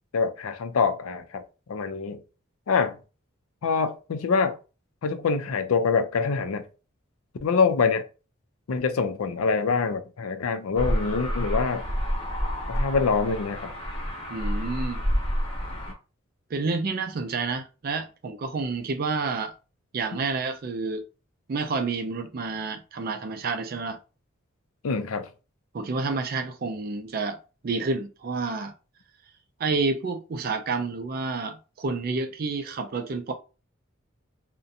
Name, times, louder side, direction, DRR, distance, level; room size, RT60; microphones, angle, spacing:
voice 1, 0.1-2.2 2.7-3.0 3.6-4.6 5.0-6.6 7.4-8.1 8.7-11.9 12.7-13.7 24.8-25.3, left 5 dB, 90° left, 0.4 m, -25 dB
sound 1, 10.8-15.9, equal, 25° left, 0.7 m, -28 dB
voice 2, 14.3-15.0 16.5-19.5 19.9-21.0 21.5-24.0 25.7-28.7 29.6-33.3, right 4 dB, 45° right, 0.4 m, -29 dB
2.5 x 2.1 x 2.6 m
head